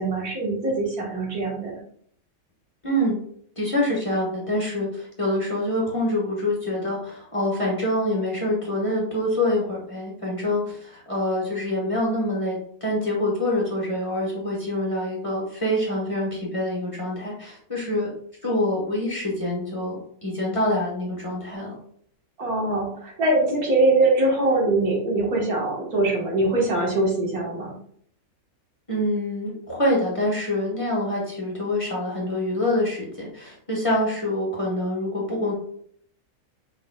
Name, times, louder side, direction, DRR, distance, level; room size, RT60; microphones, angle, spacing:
voice 1, 0.0-1.7 22.4-27.7, right 2 dB, 80° right, -2 dB, 1.9 m, -22 dB
voice 2, 2.8-3.2 3.6-18.1 18.4-19.9 20.2-21.7 28.9-35.5, left 1 dB, 25° left, -4 dB, 1.3 m, -25 dB
5.2 x 4.0 x 2.3 m, 0.63 s
omnidirectional pair, 1.5 m